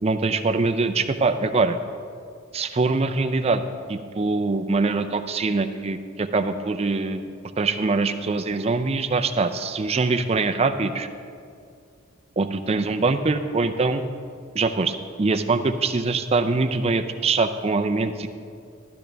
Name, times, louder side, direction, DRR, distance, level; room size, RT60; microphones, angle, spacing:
voice 1, 0.0-1.8 2.5-3.6 3.9-7.3 7.6-11.1 12.4-14.0 14.5-18.3, right 3 dB, 30° right, 7 dB, 0.5 m, -23 dB
12.0 x 12.0 x 3.4 m, 2.3 s
head